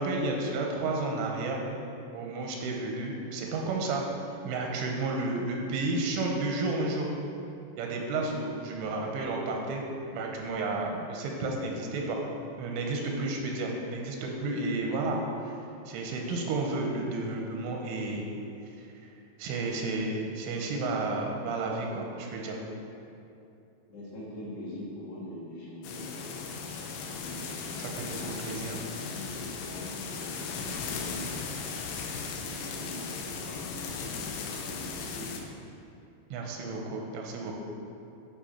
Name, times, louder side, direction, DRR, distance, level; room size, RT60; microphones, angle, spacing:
voice 1, 0.0-1.6 2.1-4.0 4.3-7.1 7.8-9.8 10.1-12.2 12.6-15.2 15.9-18.3 18.8-18.9 19.4-22.6 27.8-28.8 36.3-37.5, right 2 dB, 85° right, 1 dB, 3.2 m, -32 dB
voice 2, 23.9-26.4 27.1-31.4 32.2-35.4, left 1 dB, 65° left, -9 dB, 4.1 m, -43 dB
sound 1, 25.8-35.4, left 5 dB, 85° left, 3.2 m, -37 dB
9.8 x 5.5 x 4.4 m, 2.7 s
omnidirectional pair, 5.6 m